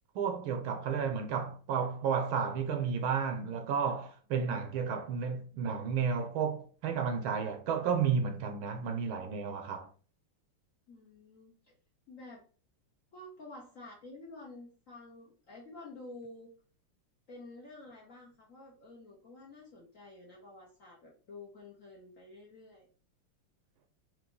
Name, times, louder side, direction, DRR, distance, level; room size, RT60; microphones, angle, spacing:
voice 1, 0.1-9.9, right 6 dB, 75° right, 1.4 m, -32 dB
voice 2, 10.9-11.5 12.1-12.4 13.1-16.5 17.3-22.9, left 2 dB, 55° left, 0.9 m, -50 dB
4.8 x 2.4 x 3.8 m
omnidirectional pair, 2.4 m